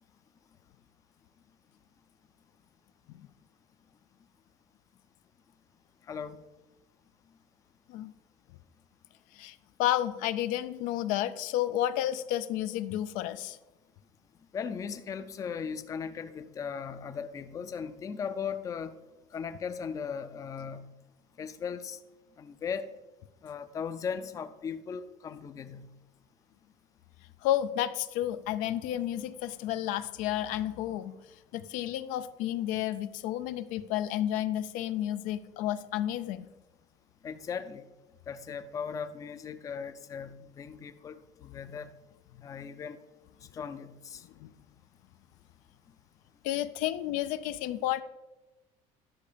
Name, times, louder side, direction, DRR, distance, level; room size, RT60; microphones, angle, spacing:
voice 1, 6.1-6.4 14.5-18.9 19.3-20.9 21.4-22.0 22.4-22.9 23.4-25.9 37.2-37.8 38.3-41.9 42.4-43.0 43.5-44.2, left 6 dB, 25° left, 10 dB, 0.5 m, -38 dB
voice 2, 9.3-13.6 27.4-31.1 31.5-36.5 44.4-44.5 46.4-48.0, left 12 dB, 75° left, 12 dB, 0.5 m, -31 dB
10.5 x 6.4 x 5.1 m, 1.1 s
cardioid pair, 160°, 14 cm